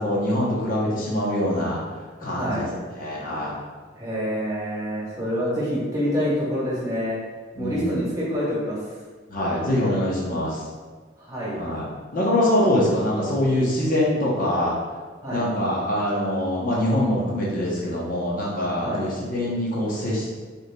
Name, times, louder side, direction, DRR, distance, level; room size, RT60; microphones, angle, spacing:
voice 1, 0.0-1.8 2.2-2.7 2.9-3.6 7.6-8.0 9.3-10.6 11.5-14.7 15.3-20.3, left 1 dB, 45° left, -5 dB, 0.8 m, -24 dB
voice 2, 2.3-2.7 4.0-7.2 7.6-8.8 11.2-11.5 15.2-15.5 18.8-19.1, equal, 20° right, -7 dB, 1.2 m, -26 dB
5.2 x 3.1 x 2.2 m, 1.4 s
head